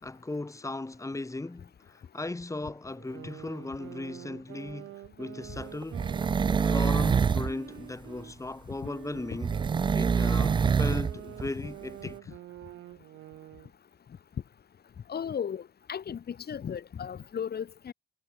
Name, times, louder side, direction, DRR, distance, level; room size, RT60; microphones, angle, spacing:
voice 1, 0.0-6.0 6.6-9.6 9.9-12.2, left 2 dB, 15° left, 4.0 m, -37 dB
sound 1, 2.9-8.3 8.8-13.7, right 15 dB, 85° right, 3.9 m, -47 dB
sound 2, 5.6-7.5 9.4-11.1 11.4-11.5, right 6 dB, 25° right, 0.4 m, -25 dB
voice 2, 15.1-15.6 15.9-17.9, left 8 dB, 55° left, 6.0 m, -35 dB
cardioid pair, 90°, 20 cm